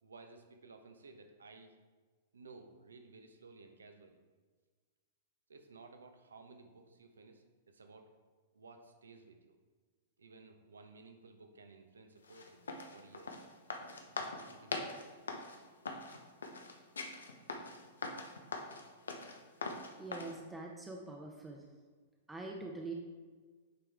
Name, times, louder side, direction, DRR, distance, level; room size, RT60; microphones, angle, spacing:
voice 1, 0.0-1.7 2.3-4.2 5.5-8.1 8.5-9.5 10.2-12.7 12.9-13.4 13.9-15.2, right 3 dB, 75° right, 5 dB, 0.9 m, -56 dB
sound 1, 12.2-20.3, left 3 dB, 75° left, 0.8 m, -42 dB
voice 2, 20.0-21.6 22.3-22.9, right 3 dB, 10° right, 0 dB, 0.8 m, -44 dB
9.4 x 4.6 x 3.5 m, 1.4 s
figure-of-eight pair, 100°, 0 cm